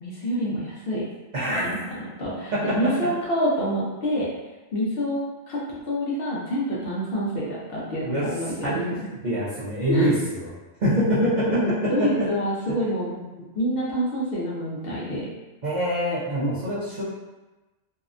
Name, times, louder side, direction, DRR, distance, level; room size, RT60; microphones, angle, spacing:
voice 1, 0.0-1.0 1.5-4.3 4.7-9.1 9.9-10.1 11.5-13.1 13.6-15.3, equal, 60° left, -6 dB, 0.7 m, -27 dB
voice 2, 1.3-1.7 8.0-8.2 8.6-10.5 10.8-11.6 12.0-12.2 13.1-13.2 15.6-17.0, equal, 50° right, -9 dB, 0.5 m, -25 dB
2.7 x 2.1 x 2.4 m, 1.1 s
omnidirectional pair, 1.3 m